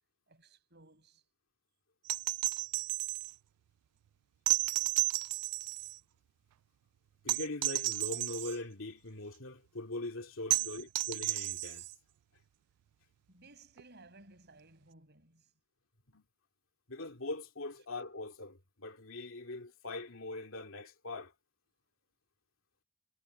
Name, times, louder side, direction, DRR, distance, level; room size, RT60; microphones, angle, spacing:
voice 1, 0.3-1.2 10.5-10.9 13.3-15.5, right 2 dB, 50° right, 7.4 m, -59 dB
sound 1, 2.0-3.3 4.5-6.0 7.3-8.6 10.5-11.9 13.8-13.9, right 21 dB, 85° right, 0.3 m, -33 dB
voice 2, 7.2-11.8 16.1-16.2 16.9-21.3, left 2 dB, 60° left, 2.6 m, -42 dB
head